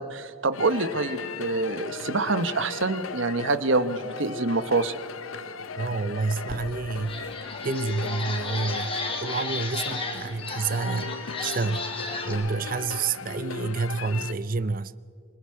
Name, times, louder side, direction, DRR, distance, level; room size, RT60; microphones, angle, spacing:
voice 1, 0.0-4.9, right 3 dB, 70° right, 1.1 m, -26 dB
sound 1, 0.5-14.3, left 5 dB, 80° left, 0.8 m, -37 dB
voice 2, 5.8-7.2 7.6-11.9 12.2-14.9, right 4 dB, 40° right, 0.5 m, -29 dB
sound 2, 6.5-6.6 7.0-12.3, left 3 dB, 25° left, 2.2 m, -34 dB
27.5 x 20.5 x 4.8 m
head